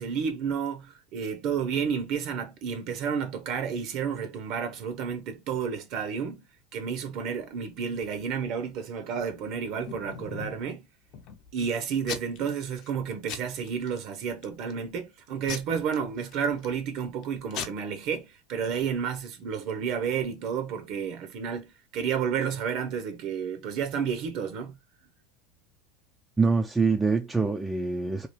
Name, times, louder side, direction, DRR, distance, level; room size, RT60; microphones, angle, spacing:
voice 1, 0.0-6.5 6.7-10.9 11.5-24.8, right 7 dB, 55° right, 0.7 m, -31 dB
Packing tape duct tape / Tearing, 9.3-10.7 11.1-11.6 12.0-12.5 12.8-13.0 13.3-14.0 14.4-14.8 15.5-16.8 17.2-17.3 17.5-17.7, left 7 dB, 50° left, 0.7 m, -39 dB
voice 2, 26.4-28.3, right 4 dB, 10° right, 0.3 m, -25 dB
2.8 x 2.3 x 3.1 m
supercardioid pair, 130°, 0 cm